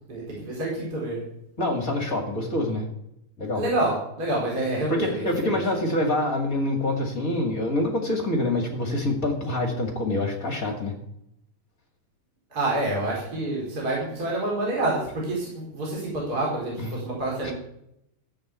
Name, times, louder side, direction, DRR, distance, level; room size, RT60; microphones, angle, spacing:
voice 1, 0.1-1.2 3.5-5.6 12.5-17.5, right 2 dB, 25° right, -4 dB, 4.6 m, -28 dB
voice 2, 1.6-2.8 3.4-3.6 4.9-10.9 16.8-16.9, left 1 dB, 30° left, 2 dB, 2.0 m, -26 dB
14.5 x 7.9 x 8.2 m, 0.79 s
omnidirectional pair, 4.1 m